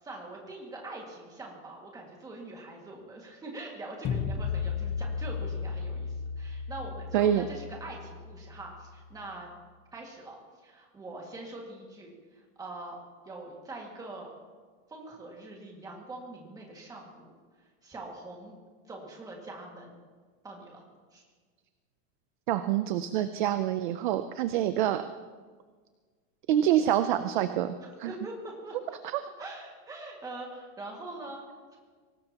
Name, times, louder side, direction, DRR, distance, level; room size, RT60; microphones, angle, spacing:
voice 1, 0.0-9.5 9.9-10.4 10.6-13.0 13.2-14.3 14.9-17.3 17.6-18.6 18.9-20.0 20.4-20.8 21.1-21.2 27.8-29.0 29.4-31.4 31.7-31.8, right 2 dB, 10° right, -1 dB, 1.9 m, -43 dB
sound 1, 4.0-9.1, left 6 dB, 15° left, 0.7 m, -35 dB
voice 2, 22.5-25.0 26.5-28.1 29.0-29.2, right 11 dB, 40° right, 10 dB, 0.5 m, -26 dB
23.5 x 18.5 x 2.9 m, 1.5 s
supercardioid pair, 180°, 40 cm